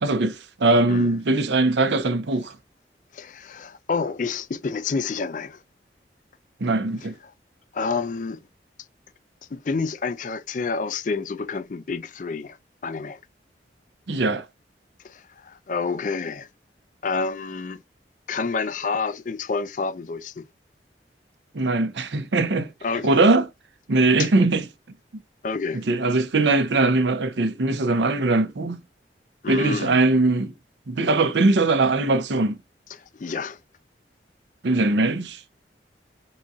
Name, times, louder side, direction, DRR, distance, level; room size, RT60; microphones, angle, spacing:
voice 1, 0.0-2.5 6.6-7.1 14.1-14.4 21.5-22.7 23.0-23.5 23.9-24.6 25.9-28.8 29.5-30.5 30.9-32.6 34.6-35.4, right 2 dB, 80° right, 0.7 m, -21 dB
voice 2, 3.1-5.6 7.0-7.3 7.7-8.5 9.5-12.6 12.8-13.2 15.0-16.5 17.0-17.8 18.3-20.5 22.8-23.1 24.2-24.3 25.4-25.8 29.4-30.0 32.9-33.6, left 4 dB, 45° left, 0.4 m, -29 dB
4.1 x 3.8 x 2.4 m
head